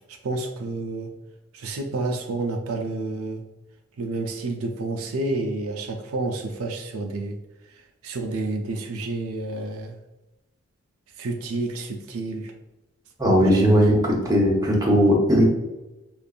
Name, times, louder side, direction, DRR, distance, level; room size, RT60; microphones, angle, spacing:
voice 1, 0.1-1.1 1.5-3.4 4.0-7.4 7.7-10.0 11.2-12.5 13.5-14.0 14.5-14.6, right 2 dB, 80° right, 4 dB, 0.5 m, -30 dB
voice 2, 13.2-15.4, equal, 15° right, -3 dB, 0.9 m, -18 dB
5.1 x 2.5 x 2.4 m, 1.0 s
head